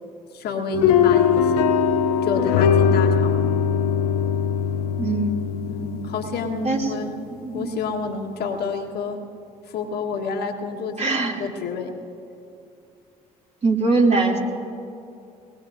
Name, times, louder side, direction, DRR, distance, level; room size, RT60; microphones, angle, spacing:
voice 1, 0.3-1.7 2.2-3.4 5.7-7.1 7.5-9.3 9.7-12.0, left 4 dB, 60° left, 2 dB, 1.5 m, -29 dB
sound 1, 0.7-7.0, left 7 dB, 80° left, 0.6 m, -20 dB
voice 2, 5.0-5.4 6.6-6.9 7.3-7.7 11.0-11.4 13.6-14.4, right 3 dB, 35° right, -1 dB, 2.6 m, -21 dB
21.5 x 19.5 x 2.7 m, 2.6 s
hypercardioid pair, 55°, 18 cm